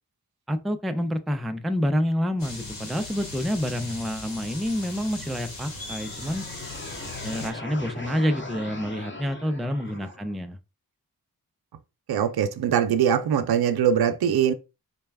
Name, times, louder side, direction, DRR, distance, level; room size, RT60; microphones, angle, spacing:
voice 1, 0.5-6.5 7.2-10.6, equal, ahead, 0.3 m, -28 dB
sound 1, 2.4-7.5, left 2 dB, 65° left, 1.2 m, -38 dB
sound 2, 5.5-10.4, left 2 dB, 30° left, 0.8 m, -40 dB
voice 2, 12.1-14.5, right 8 dB, 80° right, 0.5 m, -22 dB
4.1 x 2.2 x 3.3 m
wide cardioid pair, 125°, 37 cm